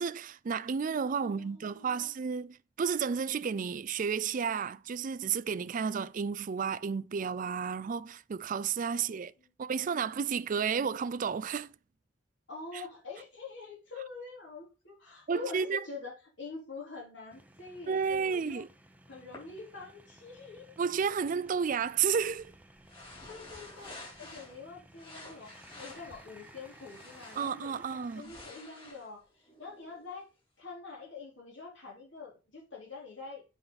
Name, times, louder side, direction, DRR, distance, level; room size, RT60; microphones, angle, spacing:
voice 1, 0.0-9.3 9.6-11.7 12.7-12.8 15.3-15.8 17.9-18.7 20.8-22.5 27.4-28.3, right 6 dB, 45° right, 0.4 m, -32 dB
voice 2, 1.2-2.1 8.9-9.5 12.5-18.6 19.1-20.7 23.3-30.3 30.6-33.6, left 4 dB, 65° left, 4.0 m, -46 dB
sound 1, 17.3-28.2, right 1 dB, 10° right, 0.8 m, -57 dB
sound 2, 19.3-19.4 22.9-24.6 24.9-27.6 28.0-30.2, left 2 dB, 25° left, 3.9 m, -51 dB
7.9 x 5.6 x 4.2 m
head